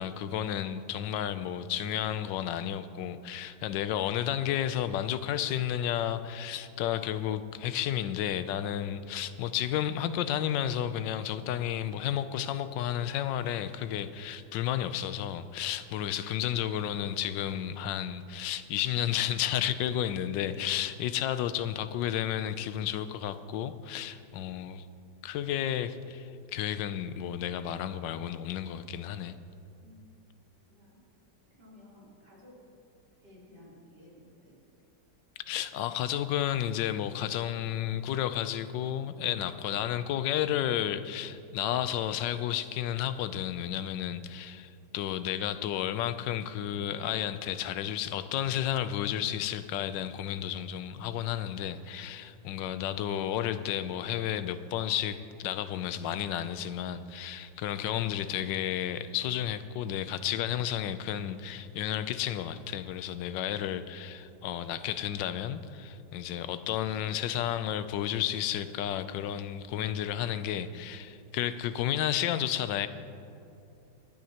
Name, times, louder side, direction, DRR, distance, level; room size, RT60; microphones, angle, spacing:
voice 1, 0.0-24.8 25.2-29.4 35.5-72.9, left 10 dB, 80° left, 12 dB, 1.3 m, -32 dB
voice 2, 30.7-31.0 31.6-32.6 33.2-34.6, left 1 dB, 65° right, -7 dB, 4.0 m, -55 dB
25.5 x 9.3 x 2.9 m, 2.6 s
omnidirectional pair, 2.0 m